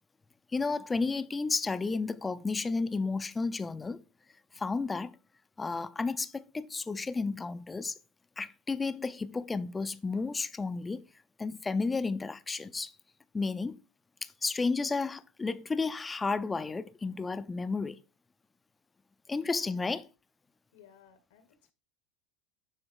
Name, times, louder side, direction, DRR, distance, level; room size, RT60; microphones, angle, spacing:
voice 1, 0.5-4.0 4.5-5.2 5.6-7.9 8.4-11.0 11.4-12.9 13.3-13.8 14.2-18.0 19.3-20.0, left 4 dB, 15° left, 0.5 m, -32 dB
voice 2, 19.4-20.0 20.7-21.5, left 8 dB, 85° left, 1.6 m, -58 dB
9.9 x 3.5 x 4.7 m
supercardioid pair, 125°, 0 cm